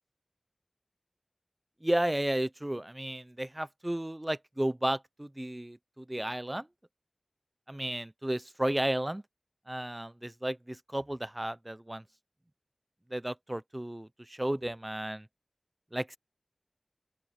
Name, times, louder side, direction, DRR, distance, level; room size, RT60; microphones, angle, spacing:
voice 1, 1.8-6.7 7.7-9.2 9.7-12.0 13.1-15.3 15.9-16.2, right 1 dB, 20° right, 0.6 m, -33 dB
open air
wide cardioid pair, 55°, 0 cm